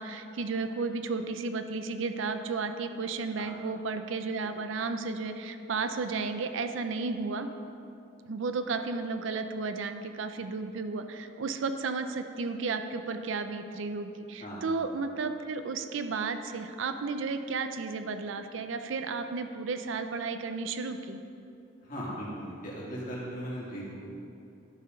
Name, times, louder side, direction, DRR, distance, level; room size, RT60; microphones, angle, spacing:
voice 1, 0.0-7.5 8.3-21.2, right 4 dB, 70° right, 8 dB, 0.5 m, -33 dB
voice 2, 21.8-24.0, equal, 40° left, -6 dB, 2.0 m, -38 dB
11.5 x 4.4 x 5.2 m, 2.6 s
head